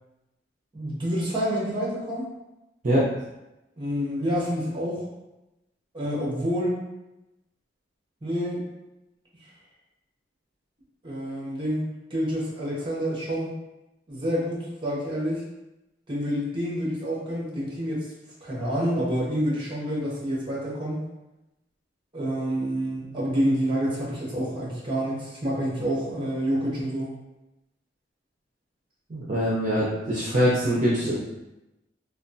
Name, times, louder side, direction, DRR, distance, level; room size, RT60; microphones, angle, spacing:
voice 1, 0.7-2.3 3.8-5.1 5.9-6.8 8.2-8.6 11.0-11.8 12.1-13.5 14.1-15.4 16.1-18.1 18.4-21.0 22.1-27.1, equal, 30° right, -5 dB, 0.9 m, -28 dB
voice 2, 29.1-31.2, equal, 45° right, -7 dB, 0.6 m, -23 dB
3.4 x 2.2 x 2.6 m, 0.96 s
head